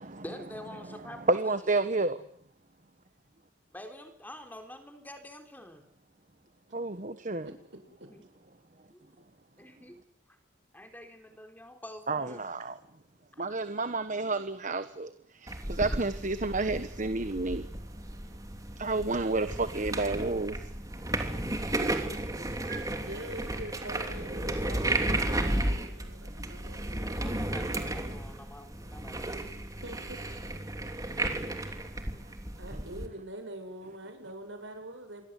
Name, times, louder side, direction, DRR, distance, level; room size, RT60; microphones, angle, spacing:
voice 1, 0.2-1.6 3.7-5.8 8.1-8.3 8.9-9.0 9.6-10.0 10.3-10.4 10.7-12.5 13.3-13.4 26.9-29.5, left 1 dB, 10° left, 3.9 m, -47 dB
voice 2, 1.3-2.2 6.7-7.5 12.1-12.8 13.4-17.7 18.8-20.6 22.3-23.0, right 3 dB, 40° right, 1.3 m, -30 dB
sound 1, 15.5-33.1, right 1 dB, 20° right, 3.1 m, -34 dB
voice 3, 23.0-27.1 29.8-30.2 32.6-35.2, right 1 dB, 75° right, 7.9 m, -44 dB
28.5 x 24.0 x 8.4 m
head